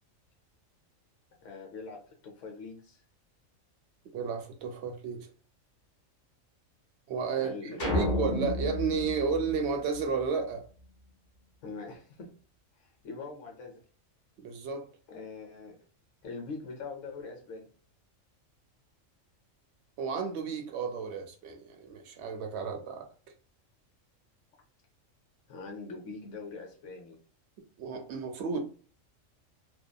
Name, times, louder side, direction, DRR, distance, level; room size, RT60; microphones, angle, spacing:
voice 1, 1.4-3.0 7.3-8.3 11.6-12.3 12.8-13.8 15.1-15.8 16.2-17.7 25.5-27.2, left 4 dB, 75° left, 1 dB, 1.0 m, -42 dB
voice 2, 4.1-5.3 7.1-10.6 14.4-14.8 20.0-23.1 27.8-28.6, right 5 dB, 65° right, 5 dB, 0.7 m, -32 dB
sound 1, 7.8-10.3, left 1 dB, 45° left, 0.8 m, -32 dB
2.8 x 2.2 x 2.2 m, 0.40 s
omnidirectional pair, 1.4 m